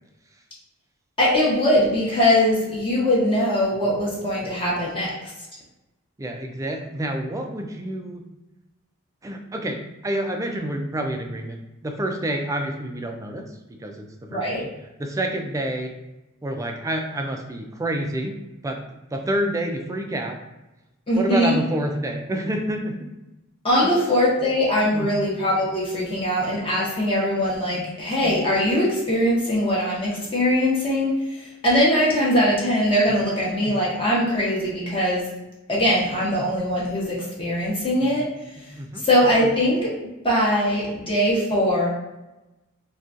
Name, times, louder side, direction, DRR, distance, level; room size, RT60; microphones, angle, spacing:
voice 1, 1.2-5.1 14.3-14.6 21.1-21.6 23.6-35.3 35.7-38.3 39.0-39.9 40.2-41.9, equal, 25° left, -6 dB, 0.8 m, -21 dB
voice 2, 6.2-8.2 9.2-13.5 13.8-14.7 15.0-15.9 16.4-18.3 18.6-18.8 19.1-20.4 21.1-22.9 23.8-23.9 24.8-25.2 27.6-27.9 38.7-39.1, right 1 dB, 15° right, 4 dB, 0.3 m, -28 dB
3.8 x 2.3 x 2.4 m, 0.98 s
head